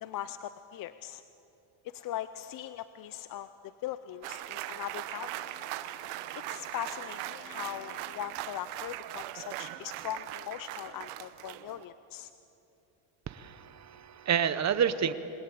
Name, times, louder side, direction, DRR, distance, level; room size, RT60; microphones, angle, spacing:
voice 1, 0.0-1.2 1.8-5.3 6.5-12.3, left 12 dB, 45° left, 13 dB, 0.6 m, -40 dB
sound 1, 4.2-11.8, right 15 dB, 85° right, 1.1 m, -40 dB
sound 2, 5.2-8.2, left 2 dB, 65° left, 7.1 m, -53 dB
voice 2, 13.3-15.1, right 8 dB, 35° right, 12 dB, 0.9 m, -29 dB
28.0 x 21.0 x 8.4 m, 3.0 s
cardioid pair, 150°, 50 cm